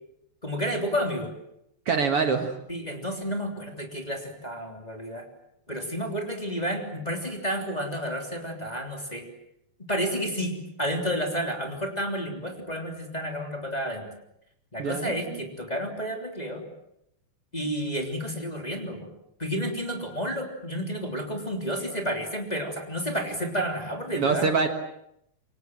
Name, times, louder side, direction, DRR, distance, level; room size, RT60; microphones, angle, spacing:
voice 1, 0.4-1.3 2.7-5.3 5.7-9.3 9.9-14.1 14.7-16.6 17.5-19.1 19.4-24.5, equal, 15° left, 2 dB, 3.2 m, -31 dB
voice 2, 1.9-2.5 14.8-15.1 24.2-24.7, right 5 dB, 55° right, 6 dB, 2.4 m, -24 dB
27.0 x 24.0 x 7.6 m, 0.79 s
omnidirectional pair, 3.4 m